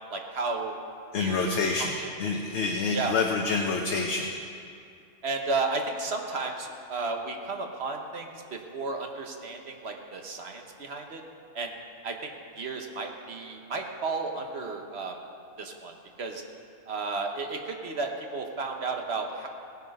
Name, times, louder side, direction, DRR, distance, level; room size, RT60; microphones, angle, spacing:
voice 1, 0.1-0.8 1.2-1.5 2.0-2.1 2.9-3.1 5.2-11.2 11.5-11.7 12.0-15.2 15.6-15.9 16.2-16.4 16.9-19.5, right 3 dB, 55° right, 3 dB, 1.3 m, -33 dB
voice 2, 1.1-4.3, left 4 dB, 65° left, 2 dB, 1.1 m, -27 dB
18.0 x 8.3 x 5.3 m, 2.4 s
omnidirectional pair, 1.3 m